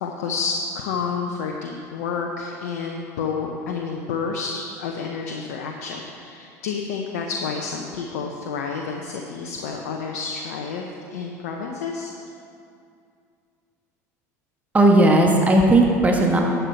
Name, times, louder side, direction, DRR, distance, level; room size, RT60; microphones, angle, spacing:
voice 1, 0.0-12.1, left 5 dB, 70° left, 1 dB, 0.9 m, -29 dB
voice 2, 14.7-16.4, right 1 dB, 15° right, 0 dB, 1.4 m, -16 dB
11.5 x 8.0 x 4.4 m, 2.4 s
hypercardioid pair, 75°, 9 cm